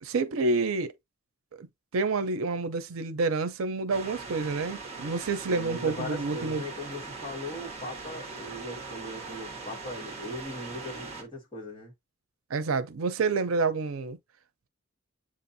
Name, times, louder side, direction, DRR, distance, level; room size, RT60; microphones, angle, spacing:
voice 1, 0.0-0.9 1.6-1.7 1.9-6.6 12.5-14.2, right 3 dB, 90° right, 0.6 m, -28 dB
sound 1, 3.9-11.2, right 3 dB, 30° right, 1.1 m, -41 dB
voice 2, 5.5-11.9, left 1 dB, 25° left, 1.8 m, -39 dB
7.4 x 2.5 x 2.6 m
head